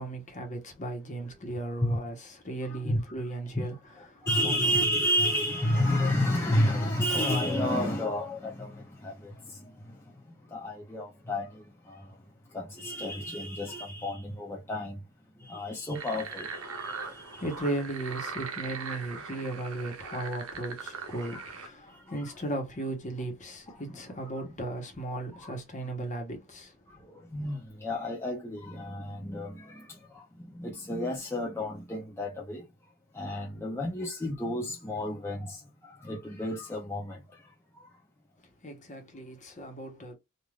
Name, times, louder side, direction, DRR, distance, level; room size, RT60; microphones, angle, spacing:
voice 1, 0.0-3.8 4.1-4.7 17.0-26.7 27.0-27.2 38.6-40.1, right 2 dB, 35° left, 1.0 m, -36 dB
voice 2, 2.6-3.0 3.5-3.6 4.0-10.0 10.5-12.2 12.5-15.0 15.4-17.4 21.2-21.5 21.9-22.3 23.7-24.0 25.3-25.5 27.3-30.3 30.5-32.6 33.1-37.4 37.8-37.9, left 1 dB, 10° left, 0.5 m, -31 dB
sound 1, 16.0-21.7, right 5 dB, 85° right, 0.7 m, -40 dB
3.3 x 2.5 x 2.3 m
head